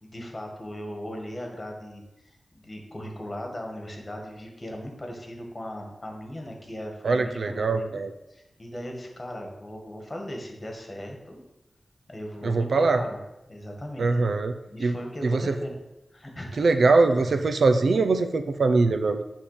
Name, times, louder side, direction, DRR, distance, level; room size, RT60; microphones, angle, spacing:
voice 1, 0.0-8.0 8.3-11.4 12.1-13.2 13.5-14.4 14.7-15.7 16.1-16.7 17.0-17.4, equal, 25° left, 2 dB, 1.8 m, -38 dB
voice 2, 7.0-8.1 12.4-13.0 14.0-14.5 14.8-14.9 15.2-15.5 16.6-19.2, right 3 dB, 75° right, 8 dB, 0.6 m, -22 dB
9.3 x 3.7 x 6.8 m, 0.93 s
wide cardioid pair, 90°, 0 cm